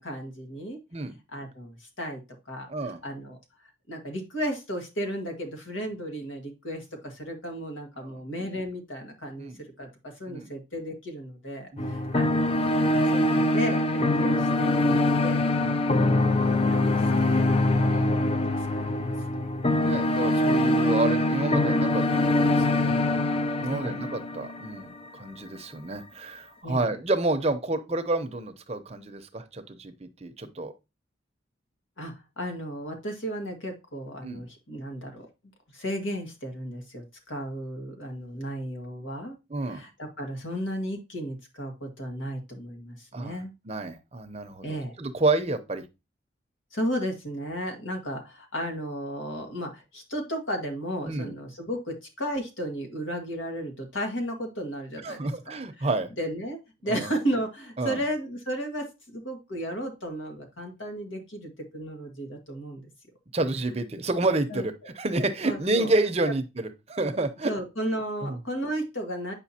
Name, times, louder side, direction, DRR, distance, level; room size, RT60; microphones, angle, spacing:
voice 1, 0.0-0.8 1.3-2.2 2.5-3.4 3.9-12.6 13.1-15.5 16.2-17.4 17.7-19.1 23.7-24.1 26.6-26.9 32.0-35.3 35.7-39.4 39.7-43.5 44.6-44.9 46.7-55.2 55.5-55.9 56.2-62.9 64.5-64.6 65.4-65.9 67.4-69.3, equal, 85° left, 1.8 m, -34 dB
voice 2, 2.7-3.0 8.0-8.2 9.4-9.6 10.3-10.5 11.7-12.0 15.6-15.8 17.9-18.1 19.8-23.0 23.6-30.7 34.2-34.4 39.5-39.8 43.1-45.9 51.1-51.4 55.0-56.1 56.9-57.1 57.8-58.0 63.3-67.5 67.8-67.9 68.2-68.4, right 2 dB, 30° right, 0.7 m, -29 dB
sound 1, 11.8-24.9, left 1 dB, 30° left, 0.4 m, -24 dB
8.1 x 5.6 x 2.8 m
head